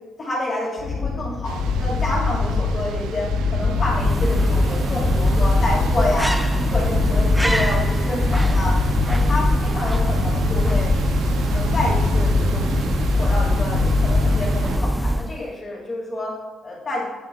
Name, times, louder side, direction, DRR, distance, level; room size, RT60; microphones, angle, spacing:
voice 1, 0.2-6.4 6.7-8.8 9.1-10.9 11.5-12.6 13.1-16.3 16.6-17.0, left 1 dB, 30° left, -8 dB, 1.9 m, -28 dB
sound 1, 0.8-15.0, left 4 dB, 85° left, 0.9 m, -24 dB
sound 2, 1.4-14.8, right 7 dB, 90° right, 0.3 m, -34 dB
sound 3, 3.7-15.5, right 1 dB, 10° right, 0.3 m, -23 dB
8.7 x 6.2 x 2.2 m, 1.2 s
cardioid pair, 90°, 0 cm